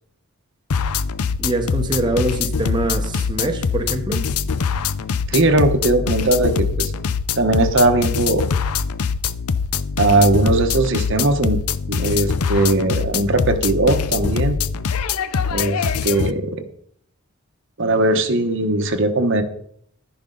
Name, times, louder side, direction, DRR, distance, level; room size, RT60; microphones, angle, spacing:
sound 1, 0.7-16.3, left 6 dB, 80° left, 0.6 m, -23 dB
voice 1, 1.4-4.3, right 2 dB, 20° right, 0.9 m, -24 dB
voice 2, 5.3-6.9 7.4-8.5 10.0-11.6 11.9-14.5 15.5-16.6 17.8-19.4, right 2 dB, 55° right, 1.1 m, -19 dB
11.5 x 10.5 x 3.9 m
head